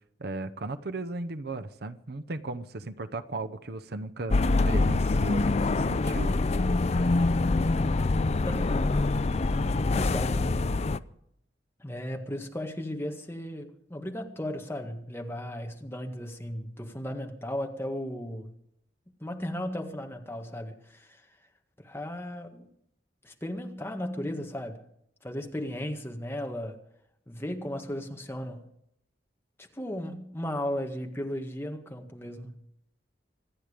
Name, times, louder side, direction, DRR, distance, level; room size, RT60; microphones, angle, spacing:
voice 1, 0.2-6.3, right 2 dB, 60° right, 11 dB, 0.8 m, -36 dB
sound 1, 4.3-11.0, left 2 dB, 35° left, 0.5 m, -25 dB
voice 2, 8.4-8.8 9.9-10.7 11.8-18.5 19.2-21.2 21.8-22.7 23.2-24.8 25.2-26.8 27.3-28.6 29.7-32.6, left 1 dB, 15° left, 3 dB, 1.8 m, -35 dB
25.5 x 9.5 x 5.1 m, 0.74 s
head